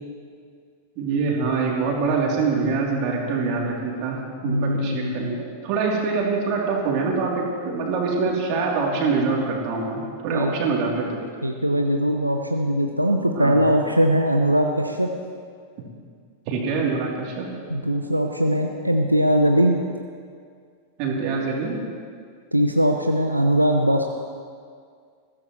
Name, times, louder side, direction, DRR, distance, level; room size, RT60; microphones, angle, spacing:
voice 1, 1.0-11.2 13.3-13.6 16.5-17.5 21.0-21.8, right 4 dB, 45° right, -2 dB, 3.3 m, -24 dB
voice 2, 4.4-5.4 10.3-10.5 11.4-15.1 17.7-19.8 22.5-24.0, equal, 90° right, 3 dB, 0.8 m, -21 dB
21.0 x 15.5 x 3.2 m, 2.1 s
figure-of-eight pair, 90°, 0 cm